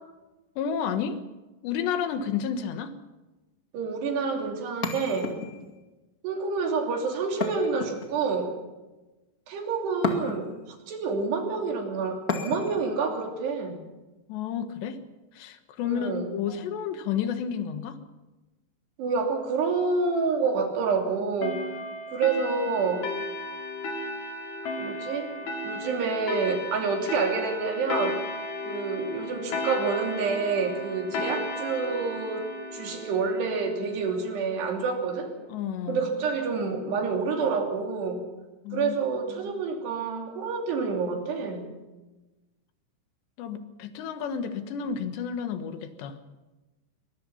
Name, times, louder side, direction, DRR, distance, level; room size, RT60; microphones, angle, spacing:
voice 1, 0.6-1.2 1.6-2.9 14.3-15.0 15.3-18.0 35.5-36.1 38.7-39.0 43.4-46.2, left 7 dB, 85° left, 9 dB, 3.6 m, -31 dB
voice 2, 3.7-5.3 6.2-8.5 9.5-13.8 15.8-16.3 19.0-21.6 22.1-23.1 24.8-25.3 25.6-28.2 28.6-32.4 32.7-35.3 35.9-38.2 38.7-41.7, right 4 dB, 75° right, 3 dB, 5.0 m, -28 dB
sound 1, 4.8-5.8 7.4-8.4 10.0-10.7 12.3-12.9, left 4 dB, 40° left, 1.3 m, -32 dB
sound 2, 21.4-34.5, left 1 dB, 65° left, 4.5 m, -35 dB
23.0 x 21.0 x 5.8 m, 1.1 s
omnidirectional pair, 4.9 m